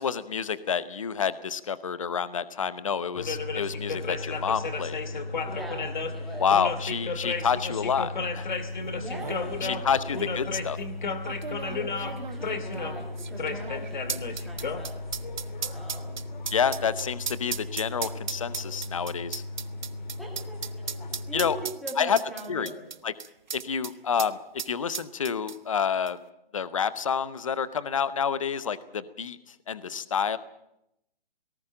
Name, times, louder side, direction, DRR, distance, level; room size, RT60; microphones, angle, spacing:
voice 1, 0.0-5.0 6.4-8.5 9.6-10.0 10.3-10.8 16.5-19.4 21.3-21.6 22.0-22.2 22.5-22.7 23.0-23.1 23.5-24.4 24.7-26.2 26.5-29.4 29.7-30.4, left 7 dB, 35° left, 16 dB, 0.9 m, -28 dB
sound 1, 3.1-21.6, left 3 dB, 55° left, 2.3 m, -34 dB
voice 2, 5.5-6.5 9.0-10.2 11.5-14.9 15.4-16.2 18.0-18.1 20.2-21.6 21.8-22.9, right 1 dB, ahead, 0 dB, 2.2 m, -42 dB
sound 2, 8.7-8.8 9.0-9.4 10.2-10.3 11.3-23.9 24.2-24.3 24.6-25.8 26.1-26.2, right 7 dB, 50° right, 0.9 m, -36 dB
18.5 x 17.5 x 8.9 m, 0.79 s
hypercardioid pair, 180°, 29 cm